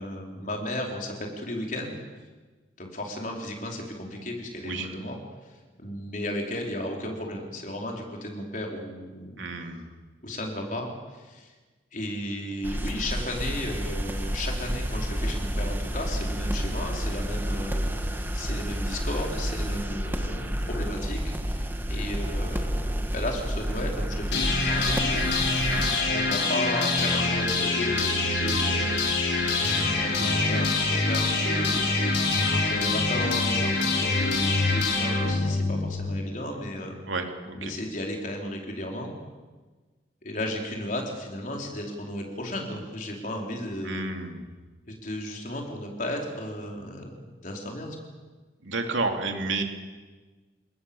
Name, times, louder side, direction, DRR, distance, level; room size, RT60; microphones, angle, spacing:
voice 1, 0.0-2.0 2.8-5.2 5.4-5.5 5.8-9.8 10.2-11.5 11.9-25.3 26.1-31.8 32.4-37.0 37.5-39.1 40.2-44.1 44.9-47.1 47.4-48.0, left 1 dB, 45° left, 1 dB, 4.6 m, -34 dB
voice 2, 9.4-9.9 25.7-25.9 37.1-37.7 43.8-44.4 48.6-49.6, right 3 dB, 85° right, 4 dB, 3.0 m, -31 dB
sound 1, 12.6-26.0, equal, 10° right, 1.4 m, -30 dB
sound 2, 24.3-36.3, left 3 dB, 70° left, 5.2 m, -25 dB
30.0 x 19.5 x 7.2 m, 1.3 s
head